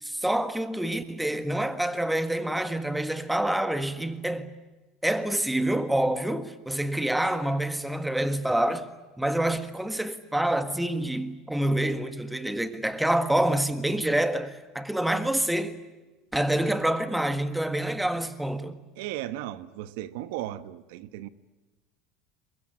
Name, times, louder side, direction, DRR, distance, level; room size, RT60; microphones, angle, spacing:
voice 1, 0.0-4.5 5.0-8.9 9.2-15.8 16.3-18.8, right 1 dB, 5° right, 1.7 m, -27 dB
voice 2, 19.0-21.3, right 14 dB, 80° right, 1.2 m, -36 dB
23.5 x 21.5 x 9.7 m
supercardioid pair, 130°, 0 cm